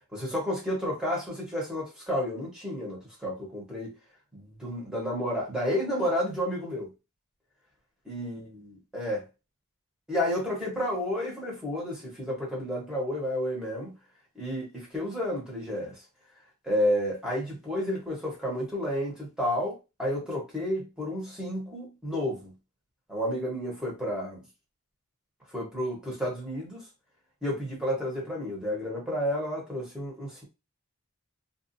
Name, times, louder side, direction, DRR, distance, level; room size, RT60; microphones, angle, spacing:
voice 1, 0.1-3.9 4.3-6.9 8.0-9.3 10.1-13.9 14.3-16.0 16.6-22.5 23.1-24.4 25.5-26.8 27.4-30.4, equal, 5° right, 1.0 m, -31 dB
2.5 x 2.4 x 2.6 m
head